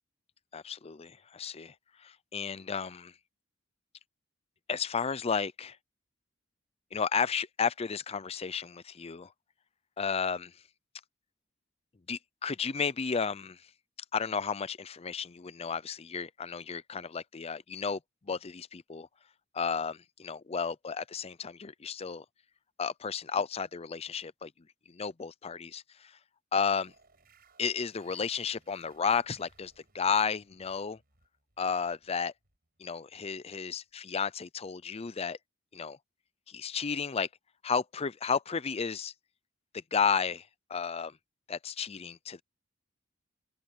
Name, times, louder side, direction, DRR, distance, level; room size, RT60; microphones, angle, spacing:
voice 1, 0.5-3.1 4.7-5.8 6.9-9.3 10.0-10.5 12.1-13.6 14.1-19.1 19.5-22.2 22.8-24.5 24.9-26.2 26.5-26.9 27.6-31.0 31.6-32.3 32.8-35.4 35.7-36.0 36.5-37.3 37.6-39.1 39.7-41.2 41.5-42.4, left 6 dB, 30° left, 0.5 m, -33 dB
sound 1, 26.8-33.9, right 4 dB, 50° right, 5.2 m, -66 dB
open air
head